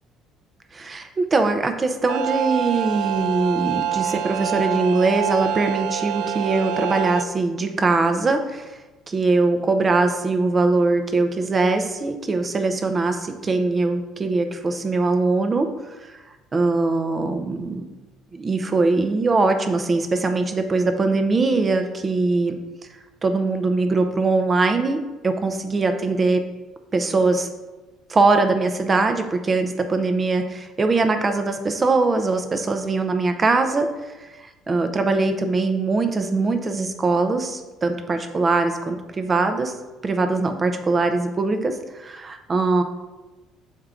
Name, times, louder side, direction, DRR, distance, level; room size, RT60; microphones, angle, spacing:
voice 1, 0.7-8.8 9.1-16.1 16.5-17.8 18.3-22.6 23.2-26.4 26.9-27.5 28.1-33.9 34.2-34.3 34.7-39.7 40.0-42.8, right 3 dB, 20° right, 7 dB, 0.6 m, -22 dB
sound 1, 2.1-7.2, right 10 dB, 80° right, 0.3 m, -26 dB
6.8 x 4.6 x 3.7 m, 1.1 s
cardioid pair, 145°, 0 cm